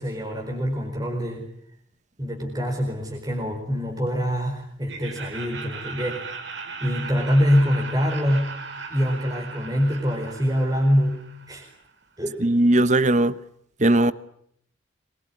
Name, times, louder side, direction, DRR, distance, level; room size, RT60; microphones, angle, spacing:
voice 1, 0.0-1.5 2.2-6.4 6.8-8.6 8.9-11.7 12.2-12.4, equal, 20° right, 1 dB, 4.7 m, -24 dB
Laughter, 4.9-11.8, right 4 dB, 70° right, 5.7 m, -38 dB
voice 2, 12.4-13.3 13.8-14.1, right 1 dB, 40° right, 16 dB, 1.1 m, -18 dB
26.0 x 22.5 x 10.0 m, 0.68 s
head